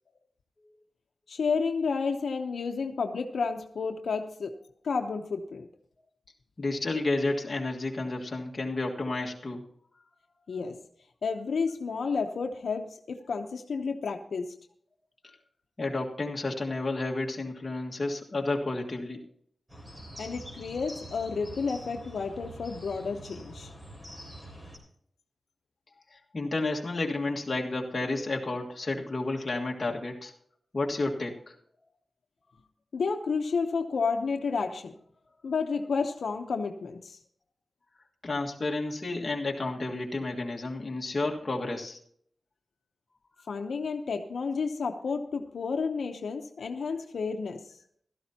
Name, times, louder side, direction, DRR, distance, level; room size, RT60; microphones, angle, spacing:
voice 1, 1.3-4.5 4.8-5.7 10.5-10.8 11.2-14.5 20.2-23.7 32.9-35.0 35.4-37.2 43.5-47.6, left 5 dB, 85° left, 4 dB, 0.9 m, -31 dB
voice 2, 6.6-9.6 15.2-15.4 15.8-19.2 26.3-30.3 30.7-31.5 38.2-42.0, left 2 dB, 35° left, -1 dB, 1.8 m, -31 dB
sound 1, 19.7-24.8, equal, 15° right, 3.5 m, -45 dB
16.0 x 13.0 x 2.9 m, 0.63 s
wide cardioid pair, 155°, 0 cm